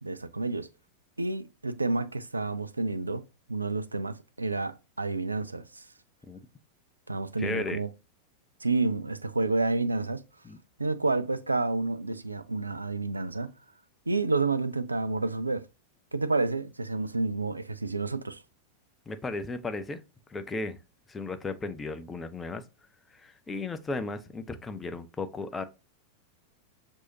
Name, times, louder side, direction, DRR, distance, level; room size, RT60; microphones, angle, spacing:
voice 1, 0.0-0.7 1.2-3.2 3.5-5.8 7.1-7.9 8.6-10.2 10.8-13.5 14.1-15.6 16.1-18.4, right 3 dB, 80° right, 0.3 m, -29 dB
voice 2, 7.4-7.8 10.4-10.6 19.1-20.0 20.3-20.8 21.1-22.6 23.1-25.6, left 3 dB, 15° left, 0.5 m, -35 dB
6.1 x 2.7 x 2.6 m
figure-of-eight pair, 90°, 0 cm